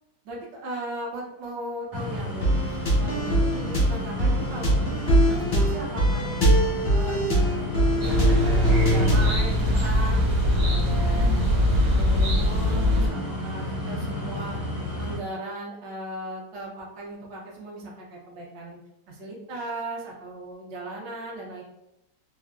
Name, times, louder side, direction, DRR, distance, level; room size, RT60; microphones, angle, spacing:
voice 1, 0.2-6.3 6.9-11.4 11.7-14.6 15.0-18.8 19.1-21.6, right 1 dB, 75° right, -3 dB, 1.3 m, -37 dB
sound 1, 1.9-15.2, left 1 dB, ahead, 0.4 m, -32 dB
sound 2, 2.4-9.4, right 1 dB, 50° left, 0.5 m, -23 dB
sound 3, 8.0-13.1, left 1 dB, 60° right, 1.2 m, -22 dB
3.5 x 2.1 x 2.3 m, 0.83 s
omnidirectional pair, 2.0 m